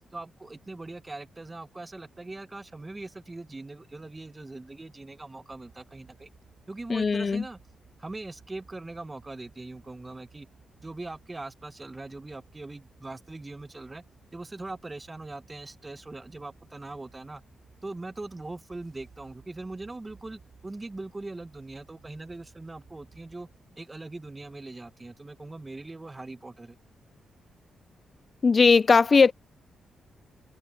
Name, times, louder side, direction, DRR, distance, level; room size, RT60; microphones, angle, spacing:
voice 1, 0.1-6.3 6.7-7.6 8.0-10.5 10.8-14.0 14.3-17.4 17.8-23.5 23.8-26.8, right 2 dB, 20° right, 1.3 m, -41 dB
sound 1, 5.5-23.6, right 5 dB, 50° right, 7.0 m, -59 dB
voice 2, 6.9-7.4 28.4-29.3, left 4 dB, 40° left, 0.3 m, -19 dB
cardioid pair, 75°, 0 cm